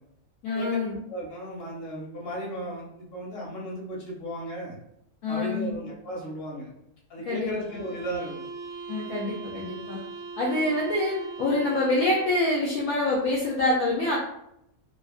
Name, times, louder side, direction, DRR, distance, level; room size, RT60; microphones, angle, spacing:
voice 1, 0.4-0.9 5.2-5.8 7.3-7.5 8.9-10.0 10.4-14.2, left 2 dB, 70° left, -4 dB, 0.9 m, -26 dB
voice 2, 1.1-4.8 5.3-6.7 7.1-8.4, equal, 45° left, -4 dB, 1.0 m, -35 dB
sound 1, 7.6-12.5, right 4 dB, 70° right, 0.9 m, -40 dB
2.8 x 2.3 x 2.4 m, 0.80 s
omnidirectional pair, 1.7 m